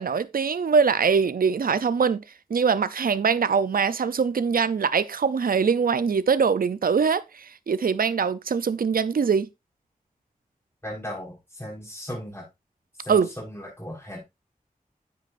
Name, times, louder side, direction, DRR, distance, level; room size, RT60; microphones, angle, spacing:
voice 1, 0.0-2.2 2.5-9.5 13.1-13.3, right 6 dB, 80° right, 0.5 m, -23 dB
voice 2, 10.8-12.4 13.0-14.2, equal, 15° left, 4.5 m, -37 dB
10.0 x 8.5 x 2.5 m
wide cardioid pair, 75°, 15 cm